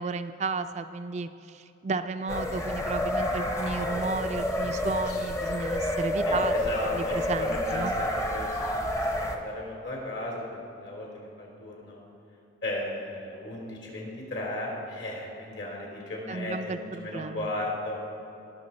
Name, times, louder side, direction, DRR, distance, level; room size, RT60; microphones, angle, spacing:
voice 1, 0.0-6.5 6.9-7.9 16.3-17.5, right 3 dB, 35° right, 9 dB, 0.4 m, -33 dB
sound 1, 2.3-9.4, left 1 dB, 15° left, 0.7 m, -29 dB
voice 2, 6.2-12.0 12.6-18.0, left 1 dB, 65° left, -2 dB, 3.0 m, -35 dB
20.0 x 6.6 x 4.3 m, 2.9 s
head